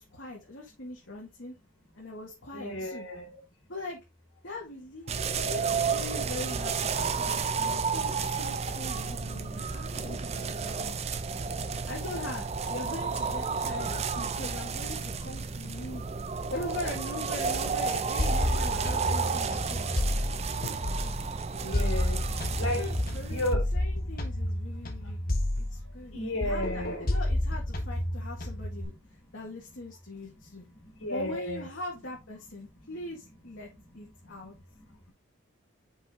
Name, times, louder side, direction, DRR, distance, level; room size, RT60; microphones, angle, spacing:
voice 1, 0.0-1.5 1.9-3.1 3.7-4.0 4.4-11.4 11.9-16.0 16.5-19.9 22.8-28.9 29.3-30.7 31.1-33.7 33.9-34.5, left 2 dB, 65° left, 1.7 m, -41 dB
voice 2, 2.5-3.3 21.6-22.2 22.6-22.8 23.3-23.6 26.1-27.0 31.0-31.7, left 1 dB, 85° left, 3.1 m, -32 dB
sound 1, 5.1-23.5, right 5 dB, 30° right, 0.4 m, -32 dB
sound 2, 18.2-21.3 21.7-26.1 26.4-28.8, left 1 dB, 45° left, 1.3 m, -30 dB
5.4 x 5.1 x 3.6 m
head